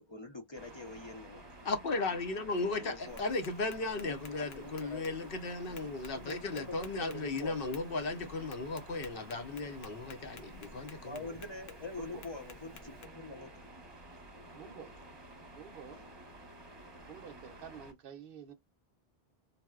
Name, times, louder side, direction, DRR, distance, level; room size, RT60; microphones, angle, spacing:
voice 1, 0.0-1.4 2.6-3.2 4.5-5.1 5.6-5.7 6.2-7.6 11.0-13.7 14.2-14.4 15.9-16.1, left 2 dB, 35° left, 0.5 m, -45 dB
sound 1, 0.5-17.9, right 1 dB, 30° right, 0.8 m, -52 dB
voice 2, 1.6-11.2, left 3 dB, 65° left, 0.8 m, -36 dB
Tap, 3.1-13.1, left 3 dB, 90° left, 0.9 m, -55 dB
voice 3, 12.0-12.3 14.5-14.9 15.5-16.0 17.1-18.5, right 8 dB, 65° right, 0.7 m, -49 dB
4.0 x 2.0 x 2.3 m
omnidirectional pair, 1.0 m